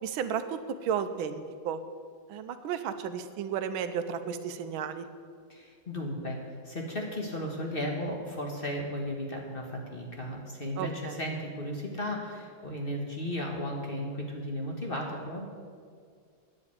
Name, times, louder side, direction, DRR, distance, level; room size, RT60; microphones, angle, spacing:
voice 1, 0.0-1.8 2.3-5.1 10.8-11.2, right 7 dB, 85° right, 10 dB, 1.5 m, -33 dB
voice 2, 5.5-15.5, equal, 30° left, 0 dB, 1.4 m, -35 dB
9.6 x 7.5 x 8.4 m, 2.1 s
omnidirectional pair, 2.2 m